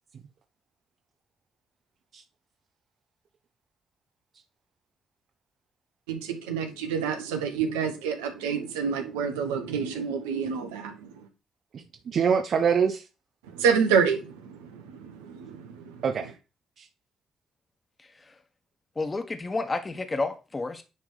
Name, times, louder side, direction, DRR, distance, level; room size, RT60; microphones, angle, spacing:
voice 1, 6.1-11.3 13.5-16.0, right 6 dB, 85° right, 1.2 m, -28 dB
voice 2, 11.7-13.1 16.0-16.4 16.8-16.9, right 6 dB, 60° right, 0.9 m, -25 dB
voice 3, 18.0-18.3 18.9-20.8, left 3 dB, 30° left, 1.3 m, -31 dB
9.8 x 3.6 x 5.0 m
hypercardioid pair, 45°, 0 cm